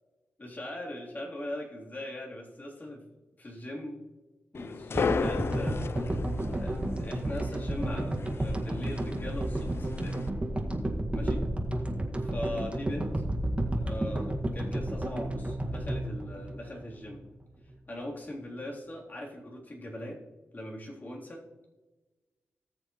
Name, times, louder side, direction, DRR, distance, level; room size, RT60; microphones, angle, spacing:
voice 1, 0.4-3.0 3.4-4.0 4.5-5.9 6.5-10.2 11.1-11.4 12.1-13.1 13.8-17.2 17.9-20.2 20.5-21.4, left 1 dB, 35° left, -3 dB, 3.5 m, -40 dB
sound 1, 4.5-10.3, left 5 dB, 55° left, 0.5 m, -36 dB
sound 2, 4.9-17.3, right 1 dB, 25° right, 1.9 m, -32 dB
18.5 x 7.1 x 3.1 m, 1.2 s
cardioid pair, 70°, 5 cm